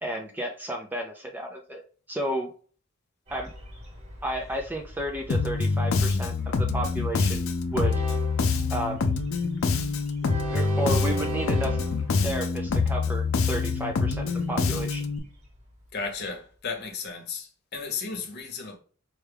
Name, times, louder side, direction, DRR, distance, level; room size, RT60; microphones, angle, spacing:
voice 1, 0.0-1.8 2.1-2.5 3.3-3.5 4.2-8.1 8.7-9.0 10.5-11.8 12.2-15.1, right 1 dB, 10° right, 0.4 m, -32 dB
Train, 3.3-16.3, right 3 dB, 35° right, 0.9 m, -40 dB
Bass guitar, 5.3-15.2, left 4 dB, 75° left, 0.5 m, -26 dB
voice 2, 15.9-18.8, left 5 dB, 50° left, 0.9 m, -34 dB
4.5 x 2.3 x 3.3 m
head